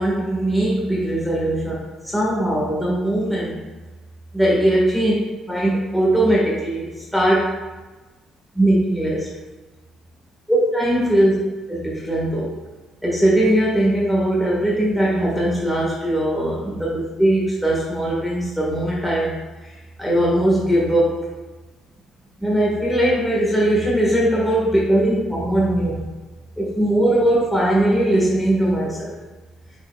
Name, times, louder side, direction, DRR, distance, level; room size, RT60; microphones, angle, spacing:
voice 1, 0.0-1.7 2.0-3.6 4.3-5.1 5.5-7.5 8.5-9.3 10.5-11.4 11.7-12.5 13.0-19.3 20.0-21.2 22.4-26.0 26.6-29.1, right 1 dB, ahead, -6 dB, 1.6 m, -20 dB
8.6 x 6.3 x 2.3 m, 1.2 s
cardioid pair, 140°, 0 cm